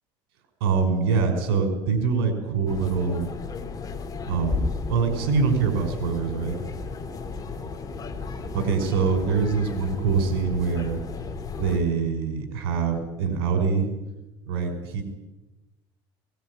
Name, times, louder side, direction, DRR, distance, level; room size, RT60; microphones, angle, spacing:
voice 1, 0.6-3.3 4.3-6.5 8.5-11.0 11.6-13.9 14.5-15.0, right 5 dB, 90° right, 5 dB, 5.4 m, -24 dB
sound 1, 2.7-11.8, left 4 dB, 30° left, 4.1 m, -33 dB
22.0 x 20.5 x 9.8 m, 1.0 s
supercardioid pair, 90°, 12 cm